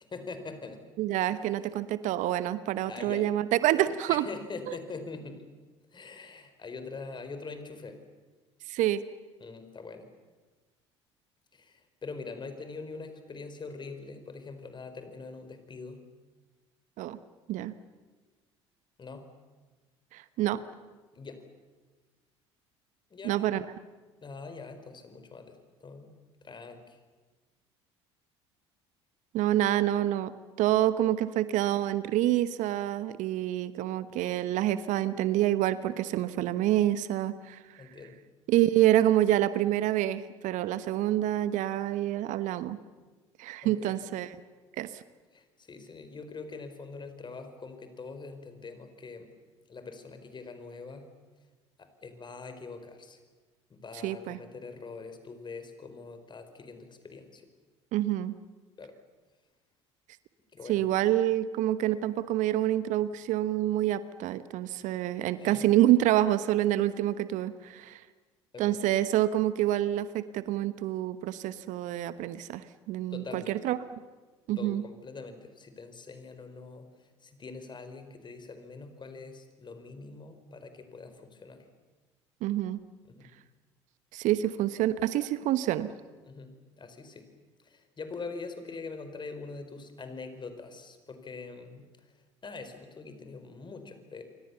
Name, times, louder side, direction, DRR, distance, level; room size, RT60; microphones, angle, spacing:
voice 1, 0.1-0.8 1.3-1.6 2.8-3.3 4.1-5.4 5.9-8.0 9.4-10.1 11.5-16.0 19.0-19.3 21.1-21.4 23.1-23.5 24.2-26.1 26.4-27.0 37.8-38.2 43.6-44.0 45.3-49.3 49.7-51.1 51.8-53.2 53.7-57.5 58.8-58.9 60.5-60.8 65.4-65.6 68.5-68.8 73.1-73.6 74.6-81.7 83.1-83.3 86.2-87.3 87.6-92.1 92.4-94.2, left 4 dB, 30° left, 9 dB, 4.4 m, -43 dB
voice 2, 1.0-4.3 4.7-4.8 8.7-9.0 17.0-17.2 17.5-17.7 20.1-20.6 23.2-23.6 29.3-30.3 30.6-37.6 38.5-42.8 43.4-44.3 44.8-45.0 54.0-54.4 57.9-58.4 60.7-68.0 68.6-73.8 74.5-74.8 82.4-82.8 84.1-85.9, right 13 dB, 55° right, 14 dB, 1.1 m, -27 dB
28.0 x 24.5 x 7.0 m, 1.3 s
figure-of-eight pair, 60°, 15 cm